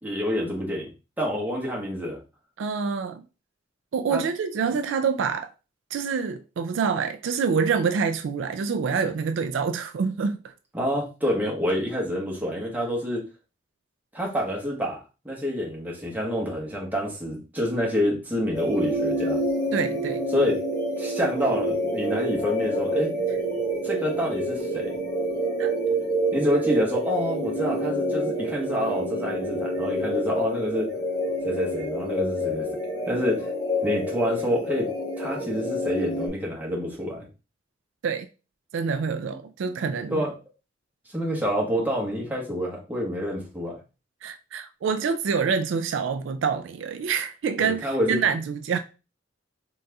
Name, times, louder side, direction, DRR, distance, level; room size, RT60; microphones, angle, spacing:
voice 1, 0.0-0.9 1.2-2.2 4.1-4.2 4.7-4.8 10.7-13.2 14.1-19.4 20.3-20.6 21.0-23.1 23.8-25.0 26.3-30.9 31.4-32.7 33.1-33.5 33.8-34.9 35.2-37.3 39.7-40.3 41.1-43.8 47.6-48.2, equal, 10° right, 1.1 m, -27 dB
voice 2, 2.6-3.2 3.9-5.5 5.9-10.5 19.7-20.3 25.6-25.7 38.0-38.3 38.7-40.3 44.2-48.8, right 5 dB, 70° right, 0.3 m, -26 dB
sound 1, 18.5-36.3, equal, 25° left, 1.9 m, -28 dB
4.0 x 3.8 x 2.2 m
head